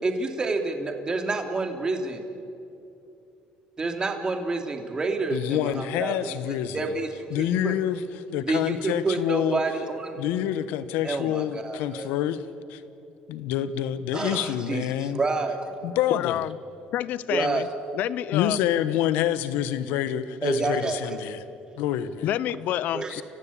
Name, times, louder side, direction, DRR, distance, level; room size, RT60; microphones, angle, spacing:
voice 1, 0.0-2.3 3.8-7.7 8.4-10.2 11.0-12.1 14.1-15.7 17.3-17.7 20.4-21.2 22.9-23.1, right 3 dB, 25° right, 5 dB, 2.8 m, -28 dB
voice 2, 5.3-6.9 7.3-8.0 8.3-9.6 10.2-12.4 12.7-12.8 13.3-15.2 15.8-16.4 18.3-21.4 21.8-22.3 23.1-23.2, left 11 dB, 90° left, 13 dB, 1.1 m, -27 dB
voice 3, 16.1-16.6 16.9-17.7 18.0-18.6 22.2-23.2, left 12 dB, 70° left, 19 dB, 0.7 m, -28 dB
29.5 x 16.0 x 8.6 m, 2.7 s
cardioid pair, 100°, 3 cm